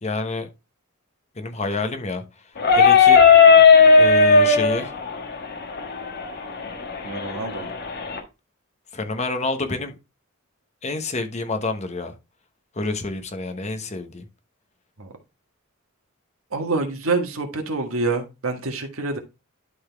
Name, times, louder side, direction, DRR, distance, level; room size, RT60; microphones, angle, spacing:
voice 1, 0.0-0.5 1.4-2.2 2.7-3.2 4.0-4.9 8.9-9.9 10.8-12.1 12.7-14.2, left 3 dB, 35° left, 1.0 m, -28 dB
sound 1, 2.6-8.2, left 5 dB, 50° left, 1.4 m, -16 dB
voice 2, 7.0-7.7 15.0-15.1 16.5-19.2, right 3 dB, 85° right, 1.7 m, -26 dB
11.5 x 4.0 x 3.4 m
head